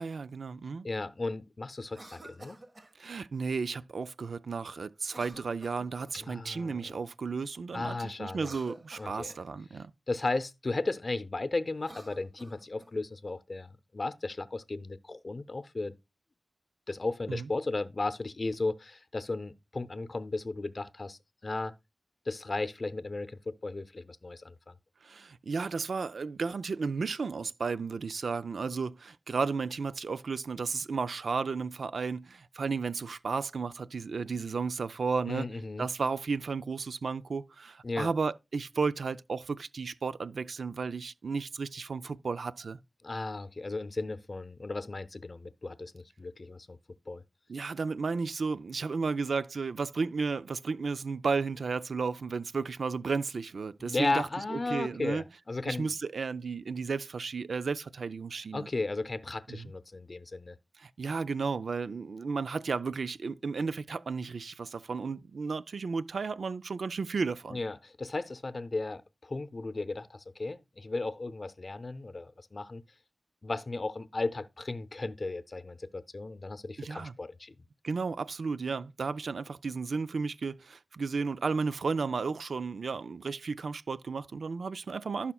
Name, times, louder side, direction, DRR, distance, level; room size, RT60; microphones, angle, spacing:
voice 1, 0.0-0.9 3.0-9.9 17.3-17.5 25.0-35.5 35.8-42.8 47.5-55.2 55.7-58.7 59.5-59.7 60.8-67.6 76.8-77.1 77.8-85.3, right 4 dB, 85° right, 0.3 m, -33 dB
voice 2, 0.8-2.6 6.1-7.0 7.7-8.5 9.0-9.3 9.7-9.8 10.1-15.9 16.9-21.8 22.3-24.8 35.3-35.9 37.8-38.1 43.0-46.8 47.1-47.2 53.8-55.9 58.5-60.6 67.5-72.8 73.4-77.6, left 3 dB, 50° left, 0.6 m, -35 dB
Cough, 1.8-2.9 5.0-6.3 8.2-9.5 11.7-12.9, right 2 dB, 50° right, 1.4 m, -50 dB
15.0 x 5.7 x 2.3 m
wide cardioid pair, 60°, 0 cm